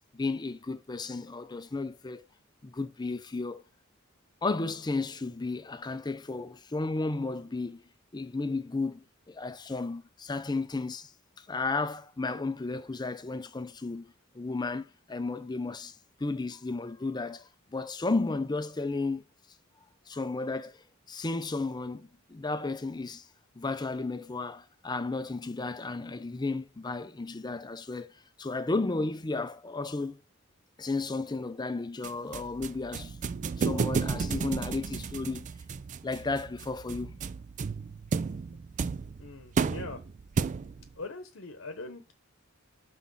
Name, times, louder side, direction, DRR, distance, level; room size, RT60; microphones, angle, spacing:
voice 1, 0.0-2.2 2.6-3.6 4.4-7.8 8.1-11.1 11.4-14.1 14.3-15.9 16.2-19.2 20.1-20.7 21.1-23.2 23.6-28.1 28.4-30.2 30.8-33.2 33.4-35.5 36.0-37.1, left 3 dB, 20° left, 0.5 m, -33 dB
sound 1, 32.0-40.9, right 5 dB, 35° right, 0.3 m, -33 dB
voice 2, 39.2-40.0 41.0-42.1, left 3 dB, 70° left, 0.9 m, -42 dB
6.1 x 4.2 x 5.5 m
head